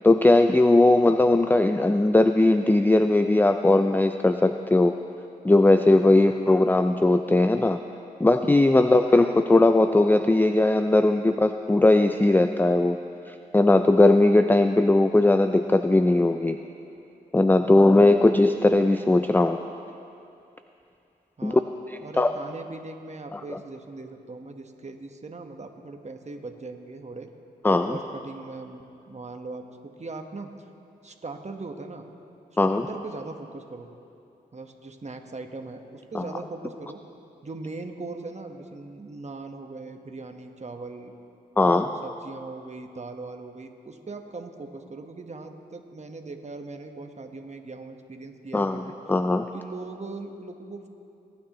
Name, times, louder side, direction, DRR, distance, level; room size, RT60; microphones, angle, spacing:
voice 1, 0.0-5.0 5.4-7.8 8.2-13.0 13.3-16.6 17.3-19.6 21.4-21.6 22.2-22.3 23.3-23.4 27.6-28.0 32.6-32.9 36.1-36.2 41.6-41.9 48.5-48.8 49.1-49.5, left 2 dB, 10° left, 8 dB, 0.4 m, -19 dB
voice 2, 6.0-6.5 8.8-9.3 17.6-18.1 21.4-21.7 22.0-27.3 27.9-30.7 31.0-32.0 32.6-33.9 34.5-37.0 37.4-41.1 41.6-49.0 49.5-50.9, right 3 dB, 40° right, 5 dB, 1.3 m, -40 dB
22.0 x 9.5 x 3.1 m, 2.7 s
supercardioid pair, 40°, 18 cm